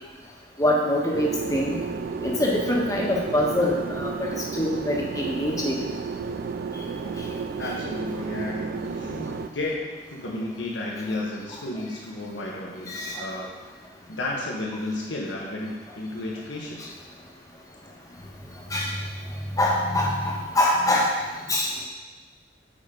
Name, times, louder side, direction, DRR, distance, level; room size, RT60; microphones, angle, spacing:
voice 1, 0.6-1.8 2.2-5.8 12.9-13.2 18.7-18.9 19.6-21.1 21.5-21.7, left 1 dB, 20° left, -2 dB, 1.3 m, -24 dB
sound 1, 1.1-9.5, right 5 dB, 50° right, 0.3 m, -32 dB
voice 2, 7.6-13.5 14.1-16.9, left 2 dB, 75° left, -3 dB, 1.3 m, -32 dB
9.0 x 5.2 x 3.9 m, 1.3 s
head